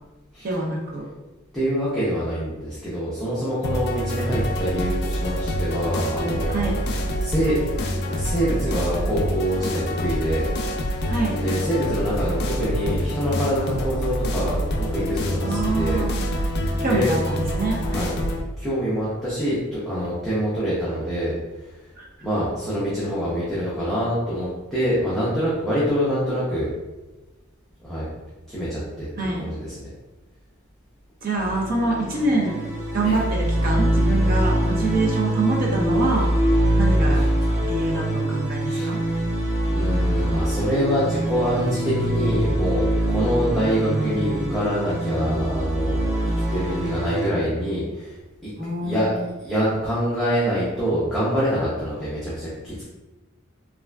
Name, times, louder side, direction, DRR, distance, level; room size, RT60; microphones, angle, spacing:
voice 1, 0.4-1.0 6.5-6.8 11.1-11.3 15.4-16.3 16.8-18.1 22.0-22.1 29.2-29.5 31.2-32.6 32.9-36.3 36.7-37.2 37.6-39.0 43.6-44.5 48.6-49.3, right 2 dB, 45° right, -2 dB, 0.5 m, -26 dB
voice 2, 1.5-6.7 7.2-7.8 8.0-10.5 11.4-16.1 16.4-17.1 17.9-18.2 18.6-21.3 21.6-21.7 22.2-26.7 27.8-28.1 28.5-29.9 33.0-33.2 37.1-37.2 38.7-38.9 39.7-48.2 48.4-48.5 48.8-49.1 49.4-52.8, equal, ahead, -10 dB, 0.6 m, -25 dB
sound 1, 3.6-18.4, equal, 50° left, 0.4 m, -26 dB
sound 2, 31.3-47.3, right 1 dB, 15° right, 0.9 m, -23 dB
3.3 x 2.4 x 2.2 m, 1.1 s
head